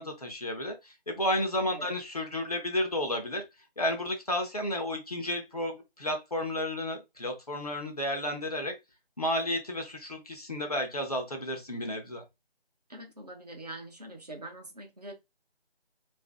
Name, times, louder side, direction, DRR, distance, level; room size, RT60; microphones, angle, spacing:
voice 1, 0.0-3.4 3.8-8.8 9.2-12.2, left 1 dB, 40° left, 0.7 m, -32 dB
voice 2, 1.7-2.0 12.9-15.1, right 1 dB, 40° right, 0.8 m, -43 dB
2.6 x 2.6 x 3.4 m
figure-of-eight pair, 165°, 31 cm